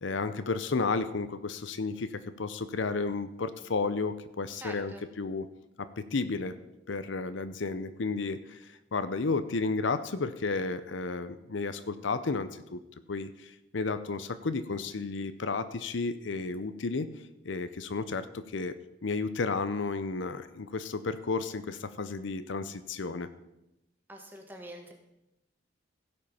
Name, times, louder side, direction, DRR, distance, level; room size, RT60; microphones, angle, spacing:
voice 1, 0.0-4.9 5.2-5.5 5.8-6.6 6.9-12.8 13.1-17.1 17.4-18.7 19.0-23.3, left 4 dB, 75° left, 12 dB, 0.6 m, -32 dB
voice 2, 4.6-5.0 24.1-24.9, right 1 dB, 10° right, 2 dB, 1.5 m, -45 dB
16.0 x 5.3 x 5.6 m, 0.90 s
head